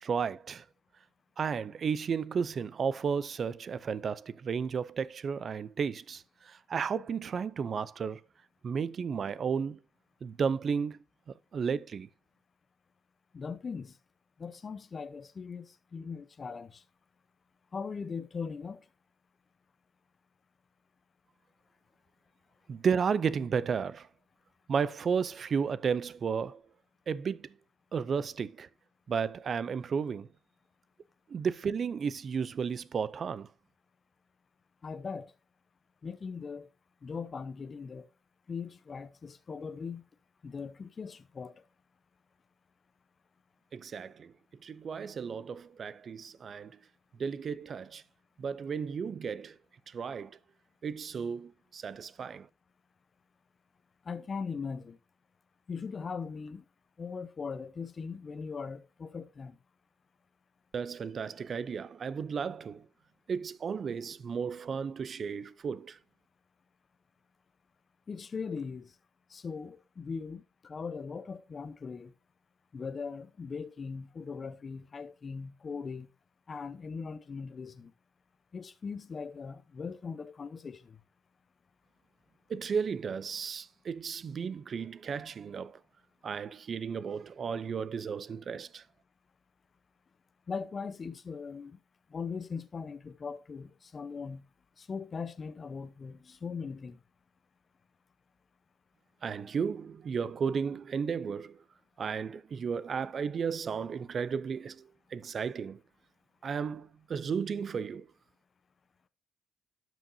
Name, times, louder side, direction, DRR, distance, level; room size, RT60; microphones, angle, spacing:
voice 1, 0.0-0.6 1.4-8.2 8.6-9.8 10.2-11.0 11.3-12.1 22.7-24.1 24.7-26.6 27.1-27.5 27.9-28.7 29.1-30.3 31.3-33.5 43.7-44.3 44.6-46.8 47.2-48.0 48.4-49.6 49.9-50.4 50.8-52.5 60.7-62.9 63.3-66.0 82.5-85.8 86.2-88.8 99.2-101.6 102.0-105.8 106.4-108.1, right 6 dB, 50° right, 0.5 m, -33 dB
voice 2, 13.3-14.0 14.4-16.8 17.7-18.8 34.8-35.3 36.0-36.7 37.0-38.1 38.5-40.0 40.4-41.6 54.1-55.0 55.7-56.6 57.0-59.6 68.1-68.9 69.3-72.1 72.7-76.1 76.5-77.9 78.5-81.0 90.5-91.8 92.1-94.4 94.8-97.0, left 5 dB, 40° left, 0.8 m, -40 dB
12.0 x 6.1 x 2.7 m
cardioid pair, 90°, 0 cm